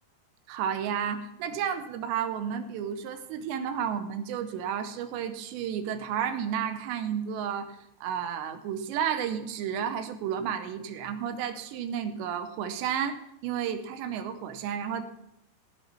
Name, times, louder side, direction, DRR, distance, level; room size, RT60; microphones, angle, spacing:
voice 1, 0.5-15.0, right 8 dB, 80° right, 9 dB, 2.9 m, -32 dB
15.5 x 6.0 x 7.1 m, 0.78 s
omnidirectional pair, 5.2 m